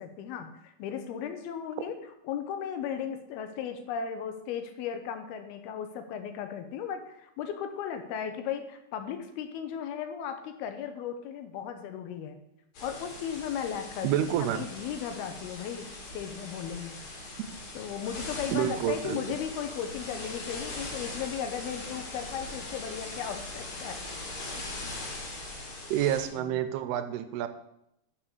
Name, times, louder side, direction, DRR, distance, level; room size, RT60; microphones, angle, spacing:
voice 1, 0.0-1.9 2.2-12.4 12.8-15.9 16.1-17.0 17.7-24.1 24.6-24.9 26.4-26.6, left 8 dB, 80° left, 8 dB, 2.6 m, -36 dB
sound 1, 12.7-26.3, left 2 dB, 60° left, 3.7 m, -41 dB
voice 2, 14.0-14.7 18.5-19.2 25.9-27.5, right 11 dB, 90° right, 10 dB, 2.6 m, -28 dB
6.9 x 6.0 x 6.6 m, 0.81 s
omnidirectional pair, 4.6 m